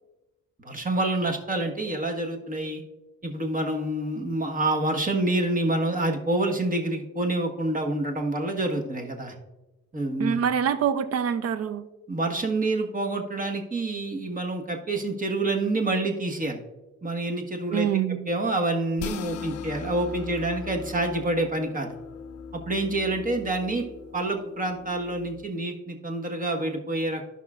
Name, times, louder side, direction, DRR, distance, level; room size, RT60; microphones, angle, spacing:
voice 1, 0.6-2.8 3.2-9.3 9.9-10.4 12.1-16.6 17.0-17.9 18.2-22.0 22.5-23.9 24.1-27.3, right 2 dB, 25° right, 3 dB, 1.4 m, -27 dB
voice 2, 10.2-11.9 17.7-18.3, right 8 dB, 55° right, 13 dB, 0.7 m, -25 dB
sound 1, 19.0-25.5, left 6 dB, 55° left, 0.5 m, -39 dB
14.5 x 5.7 x 2.4 m, 1.1 s
cardioid pair, 90°, 30 cm